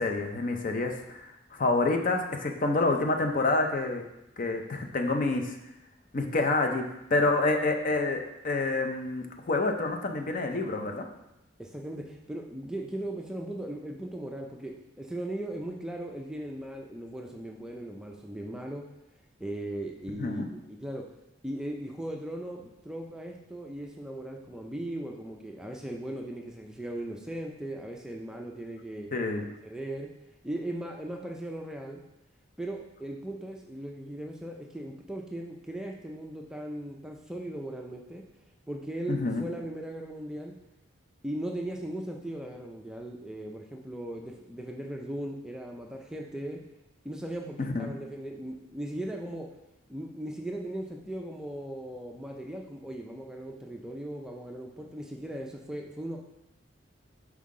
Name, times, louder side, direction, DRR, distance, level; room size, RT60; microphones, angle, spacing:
voice 1, 0.0-4.0 4.4-5.6 6.1-6.8 7.1-11.1 20.2-20.5 29.1-29.4 39.1-39.5 47.6-47.9, left 2 dB, 40° left, 4 dB, 0.6 m, -28 dB
voice 2, 11.6-18.8 19.4-21.1 21.4-29.1 29.6-30.1 30.4-32.0 32.6-38.2 38.7-40.5 41.2-46.6 47.0-49.5 49.9-56.2, right 1 dB, 5° right, 0 dB, 0.4 m, -38 dB
5.6 x 4.7 x 3.7 m, 0.88 s
head